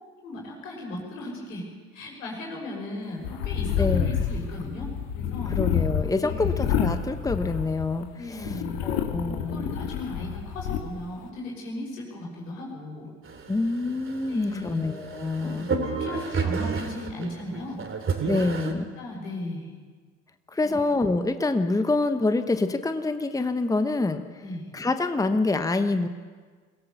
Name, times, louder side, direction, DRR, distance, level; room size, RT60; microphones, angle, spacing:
voice 1, 0.2-1.7 1.9-5.6 6.2-6.6 8.1-9.1 9.5-13.1 14.3-14.8 15.4-17.8 18.3-19.7 20.6-20.7 24.4-24.7, left 1 dB, 85° left, -1 dB, 6.0 m, -37 dB
sound 1, 3.2-8.0 8.4-10.8, left 8 dB, 65° left, 2.0 m, -28 dB
voice 2, 3.8-4.1 5.5-8.5 8.8-9.7 13.5-15.7 18.2-18.8 20.5-24.2 24.7-26.1, left 3 dB, 10° left, 9 dB, 1.1 m, -26 dB
sound 2, 13.2-18.7, right 5 dB, 30° right, 2.9 m, -32 dB
23.0 x 16.5 x 7.0 m, 1.5 s
hypercardioid pair, 70°, 38 cm